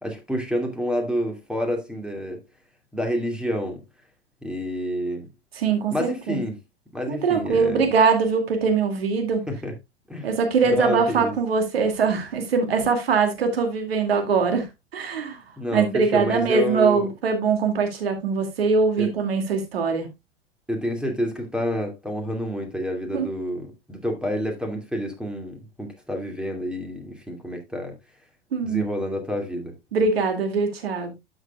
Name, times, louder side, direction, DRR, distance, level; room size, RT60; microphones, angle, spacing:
voice 1, 0.0-2.4 2.9-3.8 4.4-5.3 5.9-6.6 6.9-7.9 9.5-9.7 10.1-10.3 10.6-11.3 15.6-17.1 19.0-19.1 20.7-27.9 28.6-29.7, equal, 5° right, 2.4 m, -28 dB
voice 2, 5.5-6.4 7.1-9.4 10.2-14.7 14.9-20.1 23.1-23.3 28.5-28.8 29.9-31.1, right 5 dB, 80° right, 2.3 m, -22 dB
12.5 x 6.4 x 2.3 m
hypercardioid pair, 90°, 30 cm